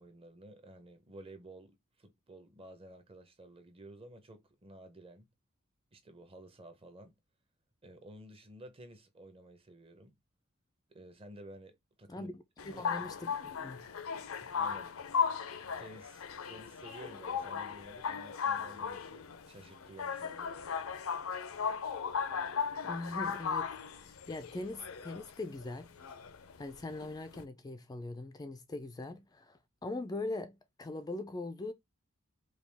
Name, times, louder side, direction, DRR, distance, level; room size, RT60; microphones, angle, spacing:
voice 1, 0.0-5.3 5.9-7.2 7.8-10.1 10.9-12.3 12.6-13.1 14.6-14.9 15.8-20.6, right 1 dB, 25° right, 0.8 m, -53 dB
voice 2, 12.1-13.3 13.6-13.8 22.8-25.9 26.6-31.7, left 2 dB, 20° left, 0.4 m, -41 dB
sound 1, 12.6-27.4, left 6 dB, 75° left, 0.6 m, -37 dB
4.9 x 2.3 x 3.4 m
head